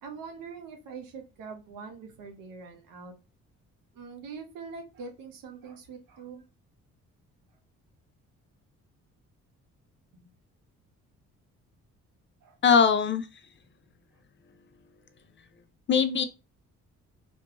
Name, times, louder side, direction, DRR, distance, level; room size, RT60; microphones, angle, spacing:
voice 1, 0.0-3.1 3.9-6.4 10.1-10.3 12.4-12.6, right 5 dB, 85° right, 0.8 m, -43 dB
voice 2, 12.6-13.3 15.9-16.2, left 6 dB, 35° left, 0.4 m, -21 dB
2.5 x 2.2 x 2.8 m
supercardioid pair, 65°, 33 cm